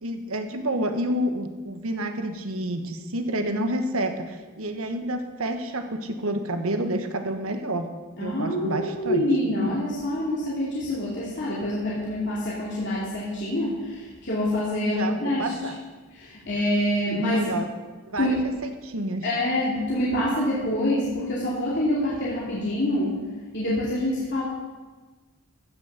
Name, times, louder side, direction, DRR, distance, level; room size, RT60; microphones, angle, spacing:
voice 1, 0.0-7.9 8.2-9.5 14.8-15.8 17.3-17.7 18.1-19.3, right 1 dB, 70° right, 6 dB, 1.3 m, -29 dB
voice 2, 8.2-15.5 16.2-17.6 18.2-18.4 19.2-23.2 23.5-24.4, left 1 dB, 55° left, -7 dB, 2.7 m, -26 dB
15.0 x 6.1 x 6.8 m, 1.3 s
head